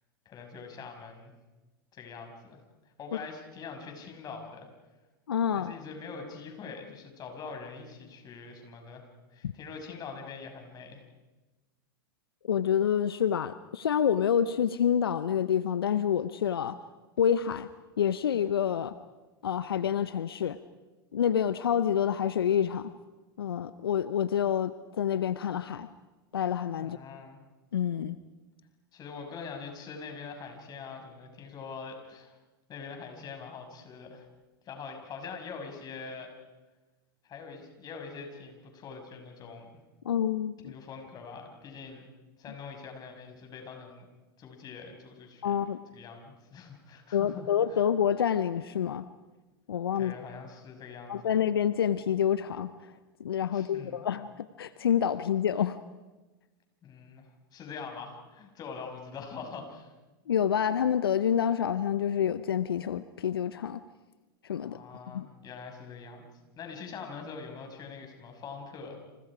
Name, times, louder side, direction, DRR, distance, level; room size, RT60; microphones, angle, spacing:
voice 1, 0.2-1.4 1.9-2.6 3.0-4.7 5.6-11.0 26.8-27.4 28.9-32.4 32.7-34.3 34.6-36.3 37.2-39.7 40.6-42.0 42.4-44.0 44.4-45.6 45.9-47.8 50.0-51.3 53.5-54.0 56.8-57.2 57.5-59.9 64.6-66.3 66.6-69.0, left 5 dB, 35° left, 4 dB, 6.4 m, -43 dB
voice 2, 5.3-5.7 9.4-9.5 12.5-16.8 17.2-17.7 18.0-18.9 19.4-20.6 21.1-22.9 23.4-25.9 26.3-27.0 27.7-28.2 40.0-40.7 45.4-45.8 47.1-49.1 49.7-50.1 51.1-52.9 53.2-55.8 60.3-63.8 64.5-64.8 65.1-65.3, left 9 dB, 80° left, 14 dB, 0.8 m, -27 dB
29.5 x 27.5 x 5.0 m, 1.2 s
hypercardioid pair, 100°, 12 cm